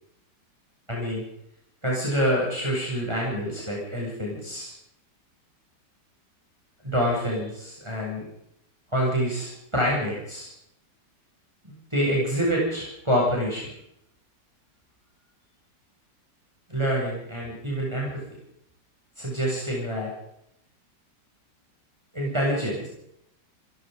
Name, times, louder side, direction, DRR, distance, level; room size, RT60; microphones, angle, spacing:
voice 1, 0.9-1.2 1.8-4.7 6.8-8.2 8.9-10.5 11.6-13.7 16.7-18.2 19.2-20.1 22.1-22.9, equal, 15° right, -4 dB, 7.8 m, -27 dB
26.5 x 18.0 x 5.4 m, 0.76 s
omnidirectional pair, 1.9 m